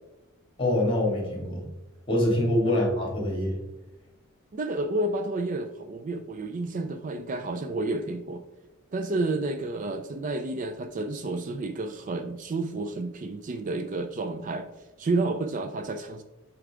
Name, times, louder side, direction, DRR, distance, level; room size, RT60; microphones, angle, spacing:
voice 1, 0.6-1.6 2.1-3.6, left 1 dB, 25° left, -2 dB, 2.4 m, -25 dB
voice 2, 4.5-8.4 8.9-14.7 15.0-16.2, right 2 dB, 40° right, 8 dB, 0.4 m, -30 dB
8.1 x 4.6 x 3.7 m, 1.0 s
head